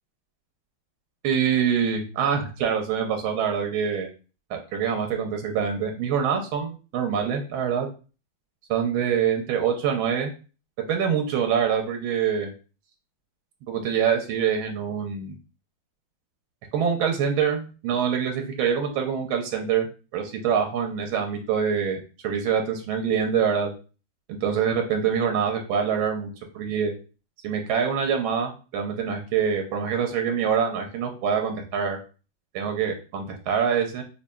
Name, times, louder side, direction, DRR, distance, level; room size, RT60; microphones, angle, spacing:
voice 1, 1.2-4.1 4.5-7.9 8.7-10.3 10.9-12.5 13.7-15.3 16.7-19.9 20.1-23.7 24.3-26.9 27.4-32.0 32.5-34.0, right 7 dB, 90° right, 4 dB, 1.5 m, -25 dB
5.4 x 2.5 x 2.2 m, 0.35 s
omnidirectional pair, 2.2 m